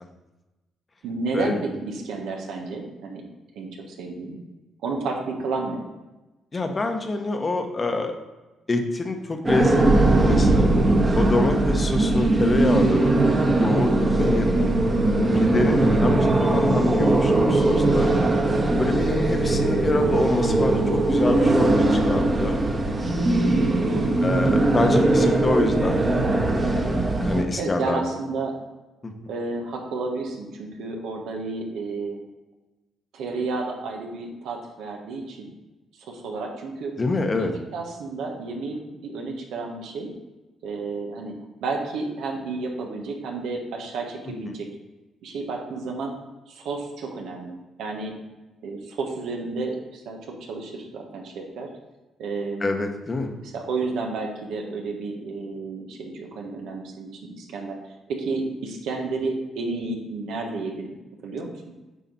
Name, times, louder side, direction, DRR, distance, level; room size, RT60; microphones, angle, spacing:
voice 1, 1.0-3.3 3.5-4.4 4.8-5.9 19.2-19.4 23.9-24.4 24.8-25.0 27.6-28.5 29.3-32.3 33.1-35.5 35.9-36.9 37.3-40.1 40.6-44.7 45.2-46.1 46.5-48.1 48.6-51.7 52.2-52.8 53.4-57.8 58.1-61.0 61.2-61.5, right 3 dB, 85° right, 1 dB, 1.4 m, -31 dB
voice 2, 6.5-8.1 8.7-10.7 11.1-13.1 13.6-14.5 15.3-18.1 18.8-22.6 24.2-26.0 27.2-28.0 29.0-29.1 37.0-37.5 52.6-53.3, left 2 dB, 30° left, 4 dB, 1.0 m, -26 dB
sound 1, 9.4-27.4, right 2 dB, 30° right, 1.2 m, -20 dB
8.5 x 5.0 x 4.1 m, 1.1 s
cardioid pair, 90°, 0 cm